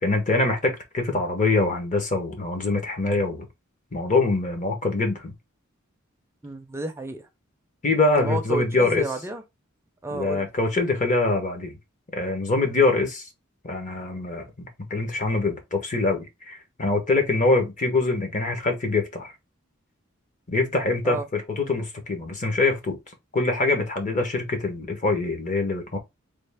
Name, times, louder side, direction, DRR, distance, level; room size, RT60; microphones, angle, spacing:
voice 1, 0.0-3.5 3.9-5.3 7.8-9.0 10.1-11.8 12.1-13.3 13.6-19.3 20.5-23.0 23.3-26.0, left 3 dB, 40° left, 0.9 m, -24 dB
voice 2, 6.4-7.3 8.2-9.4 10.0-10.5 21.0-21.3, right 1 dB, 15° right, 0.5 m, -30 dB
3.4 x 2.4 x 3.4 m
head